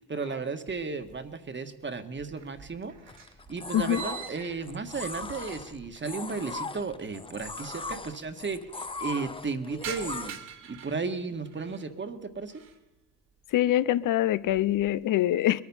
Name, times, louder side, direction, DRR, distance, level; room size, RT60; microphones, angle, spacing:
voice 1, 0.1-2.9 3.5-10.4 10.7-12.5, right 4 dB, 30° right, 1.6 m, -34 dB
sound 1, 0.7-1.5 1.8-5.9 6.2-6.3 7.2-7.3 7.4-7.5 7.8-8.3 8.7-11.9 12.3-12.9 13.3-13.7 14.1-15.0, right 8 dB, 60° right, 2.6 m, -46 dB
sound 2, 3.1-10.3, left 3 dB, 15° left, 0.7 m, -39 dB
voice 2, 13.5-15.6, left 13 dB, 60° left, 0.7 m, -24 dB
22.0 x 9.5 x 5.6 m
supercardioid pair, 65°, 37 cm